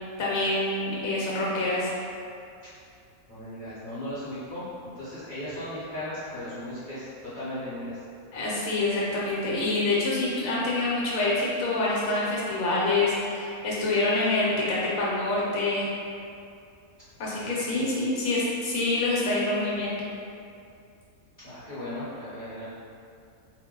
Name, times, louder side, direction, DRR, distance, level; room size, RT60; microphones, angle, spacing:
voice 1, 0.2-1.9 8.3-15.9 17.2-19.9, left 2 dB, 70° left, -6 dB, 1.1 m, -26 dB
voice 2, 3.3-4.6 4.9-8.0 17.3-17.7 21.4-22.7, left 1 dB, 40° left, -14 dB, 0.9 m, -37 dB
2.6 x 2.2 x 3.6 m, 2.5 s
omnidirectional pair, 1.6 m